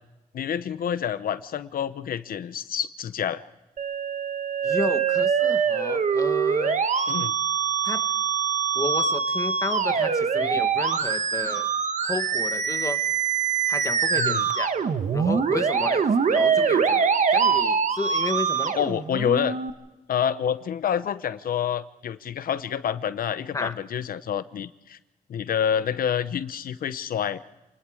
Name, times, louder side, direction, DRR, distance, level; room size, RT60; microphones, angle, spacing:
voice 1, 0.3-3.4 7.1-7.3 14.1-14.4 18.7-19.6 20.1-25.0 25.3-27.4, left 8 dB, 75° left, 13 dB, 0.8 m, -28 dB
Musical instrument, 3.8-19.7, right 6 dB, 55° right, 1.3 m, -24 dB
voice 2, 4.6-6.8 7.8-8.0 8.7-11.7 12.0-13.0 13.7-14.7 15.1-18.8 23.5-23.7, left 3 dB, 20° left, 9 dB, 1.2 m, -32 dB
28.0 x 20.5 x 4.9 m, 1.0 s
wide cardioid pair, 140°, 15 cm